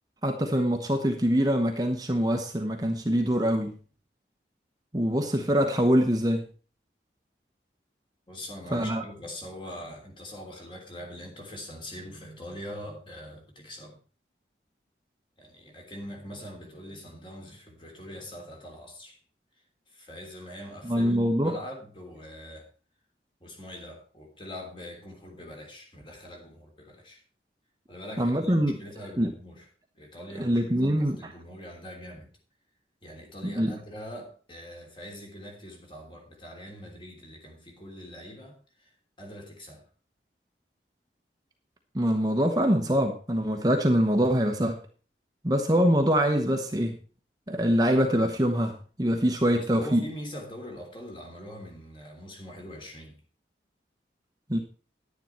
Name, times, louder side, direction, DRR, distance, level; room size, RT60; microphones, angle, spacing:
voice 1, 0.2-3.8 4.9-6.4 8.7-9.0 20.8-21.5 28.2-28.8 29.2-29.3 30.4-31.3 33.4-33.7 41.9-44.8 45.4-47.0 47.5-50.0 54.5-54.6, equal, 20° right, 1.0 m, -24 dB
voice 2, 8.3-14.0 15.4-19.2 19.9-21.2 21.4-22.7 23.4-27.2 27.9-29.6 29.9-32.3 33.0-38.9 39.2-39.8 49.5-53.2, equal, 30° left, 3.1 m, -43 dB
10.5 x 10.0 x 4.4 m
head